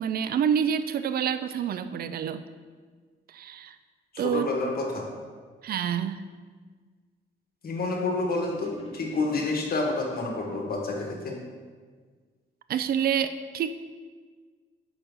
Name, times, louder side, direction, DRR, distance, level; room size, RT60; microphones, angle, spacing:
voice 1, 0.0-2.4 3.3-3.8 4.2-4.5 5.6-6.2 12.7-13.8, right 8 dB, 50° right, 11 dB, 0.4 m, -27 dB
voice 2, 4.1-5.1 7.6-11.3, left 3 dB, 50° left, 0 dB, 1.4 m, -29 dB
sound 1, 8.4-9.7 10.4-11.2, left 2 dB, 30° left, 1.0 m, -44 dB
5.8 x 4.5 x 5.3 m, 1.6 s
cardioid pair, 90°, 20 cm